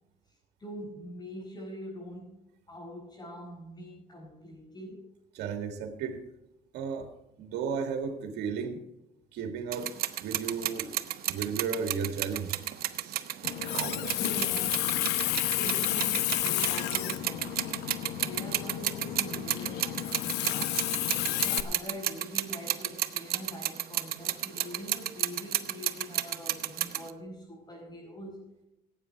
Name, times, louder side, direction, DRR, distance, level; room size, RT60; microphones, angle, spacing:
voice 1, 0.3-2.4 2.7-5.1 14.1-15.0 15.3-17.7 18.1-20.9 21.4-28.4, equal, 25° left, -6 dB, 6.1 m, -43 dB
voice 2, 5.3-6.2 6.7-7.1 7.4-8.8 9.3-9.9 10.2-10.9 11.3-12.6 13.0-13.3, right 6 dB, 85° right, 5 dB, 2.1 m, -34 dB
sound 1, 9.7-27.1, right 12 dB, 65° right, 0.9 m, -33 dB
Water tap faucet, 13.4-21.6, left 13 dB, 85° left, 0.8 m, -31 dB
Vehicle horn car horn honking, 14.2-14.9, left 7 dB, 55° left, 2.1 m, -51 dB
18.0 x 8.8 x 4.7 m, 0.88 s
cardioid pair, 110°, 17 cm